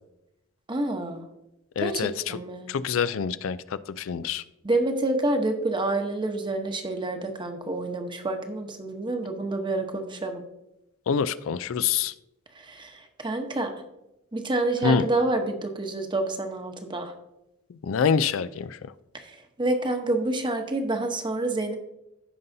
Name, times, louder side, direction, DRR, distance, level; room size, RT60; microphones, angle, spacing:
voice 1, 0.7-1.2 1.8-2.7 4.6-10.4 12.5-13.7 14.3-17.1 19.1-21.8, right 2 dB, 25° right, 5 dB, 1.0 m, -28 dB
voice 2, 1.8-2.4 2.7-4.4 11.1-12.1 14.8-15.1 17.7-18.8, left 6 dB, 80° left, 15 dB, 0.4 m, -26 dB
15.0 x 5.5 x 2.7 m, 0.90 s
head